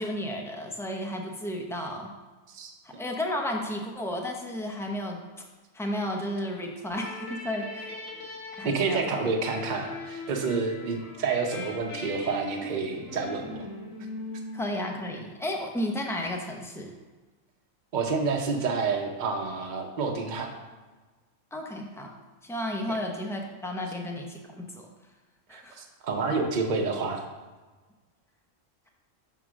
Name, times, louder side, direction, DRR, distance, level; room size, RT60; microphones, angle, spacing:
voice 1, 0.0-2.1 3.0-5.2 5.7-8.0 8.5-9.3 14.5-16.9 21.5-22.1 22.4-24.9 25.5-25.8, left 1 dB, 5° left, 1 dB, 0.4 m, -33 dB
sound 1, 6.9-15.4, left 2 dB, 85° left, 1.8 m, -40 dB
voice 2, 8.6-13.7 17.9-20.5 25.5-27.2, right 4 dB, 40° right, 2 dB, 0.8 m, -29 dB
6.0 x 3.7 x 6.1 m, 1.3 s
omnidirectional pair, 1.4 m